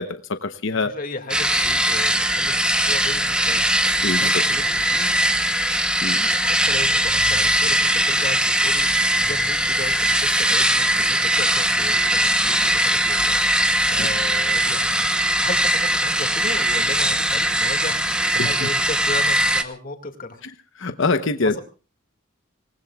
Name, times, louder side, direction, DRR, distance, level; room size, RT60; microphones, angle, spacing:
voice 1, 0.0-0.9 4.0-4.4 6.0-6.2 14.0-14.1 18.4-18.7 20.8-21.6, left 3 dB, 65° left, 9 dB, 1.0 m, -24 dB
voice 2, 0.7-5.3 6.1-15.1 15.4-20.4 21.4-21.6, left 2 dB, 45° left, 6 dB, 2.2 m, -35 dB
sound 1, 1.3-19.6, right 1 dB, 5° right, 1.0 m, -20 dB
26.5 x 19.0 x 2.4 m, 0.34 s
head